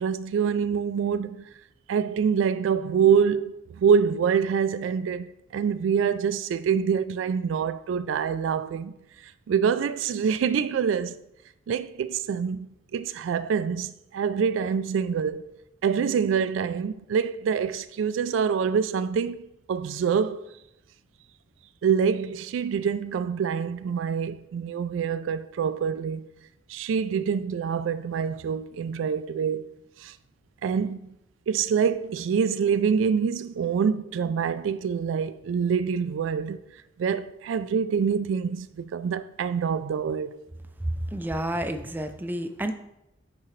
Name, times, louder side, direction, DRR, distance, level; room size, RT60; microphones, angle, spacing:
voice 1, 0.0-1.5 1.9-8.9 9.5-11.2 11.7-20.5 21.8-26.3 26.7-29.7 30.0-30.1 30.6-31.1 31.5-36.6 37.0-40.4, right 7 dB, 90° right, 0.3 m, -26 dB
voice 2, 40.8-42.7, right 1 dB, 10° right, 0.3 m, -30 dB
9.9 x 3.7 x 3.2 m
head